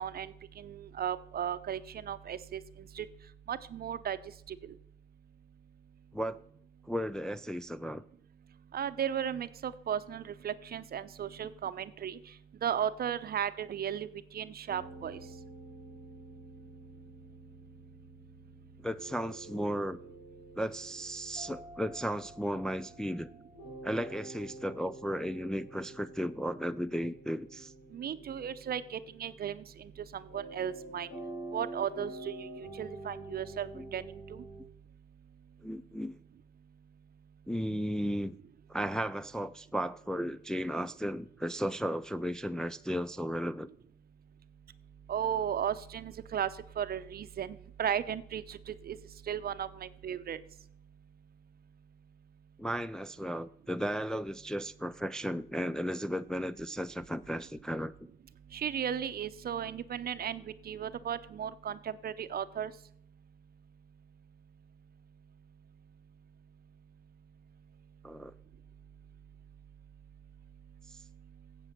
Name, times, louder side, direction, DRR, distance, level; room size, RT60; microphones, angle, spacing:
voice 1, 0.0-3.1 3.5-4.2 4.5-4.7 8.7-12.2 12.6-14.1 14.3-15.2 27.9-31.1 31.5-34.4 45.1-46.5 46.8-49.0 49.3-50.4 58.5-62.7, right 9 dB, 50° right, 0.7 m, -35 dB
voice 2, 6.9-8.0 18.8-20.0 20.6-23.3 23.8-27.7 33.7-33.9 35.6-36.2 37.5-38.4 38.7-43.7 52.6-57.9 68.0-68.3 70.9-71.0, equal, 5° left, 0.3 m, -35 dB
sound 1, 14.7-34.6, right 2 dB, 85° left, 4.8 m, -48 dB
8.0 x 7.8 x 5.9 m
cardioid pair, 90°, 20 cm